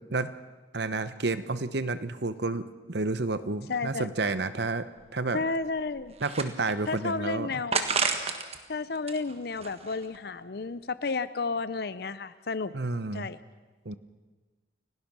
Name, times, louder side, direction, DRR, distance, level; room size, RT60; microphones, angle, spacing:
voice 1, 0.7-4.9 5.1-5.4 6.2-7.5 12.7-13.3 13.8-14.0, right 3 dB, 60° right, 13 dB, 0.9 m, -30 dB
voice 2, 3.7-4.1 5.3-6.2 6.9-7.9 8.7-12.7 13.1-13.4, left 4 dB, 55° left, 14 dB, 0.6 m, -32 dB
sound 1, 5.0-5.1 5.7-7.0 7.7-8.6 8.9-10.2, right 5 dB, 30° right, 1.5 m, -31 dB
29.0 x 17.5 x 6.2 m, 1.3 s
head